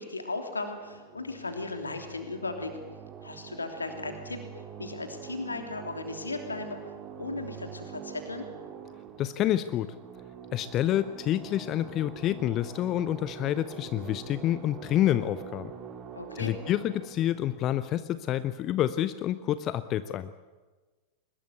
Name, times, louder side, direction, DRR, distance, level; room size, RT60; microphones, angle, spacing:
voice 1, 0.0-2.7 3.2-8.5 16.1-16.5, left 3 dB, 80° left, 5 dB, 3.1 m, -36 dB
sound 1, 0.7-18.9, right 7 dB, 30° right, 2.5 m, -45 dB
voice 2, 9.2-9.9 10.5-15.7 16.4-20.3, left 12 dB, 35° left, 14 dB, 0.7 m, -28 dB
22.5 x 20.5 x 8.2 m, 1.3 s
figure-of-eight pair, 90°, 0 cm